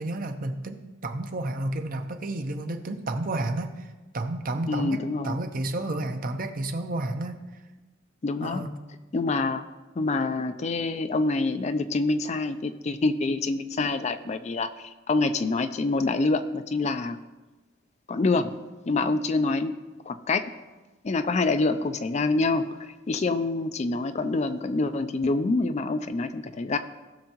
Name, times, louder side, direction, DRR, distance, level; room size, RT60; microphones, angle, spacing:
voice 1, 0.0-7.4 8.4-8.7, right 2 dB, 45° right, 7 dB, 0.8 m, -31 dB
voice 2, 4.7-5.4 8.2-8.6 9.1-9.6 10.0-14.7 15.1-17.2 18.1-18.5 18.9-19.8 20.1-20.5 21.0-26.8, left 3 dB, 35° left, 10 dB, 0.4 m, -26 dB
18.0 x 6.4 x 3.0 m, 1.2 s
head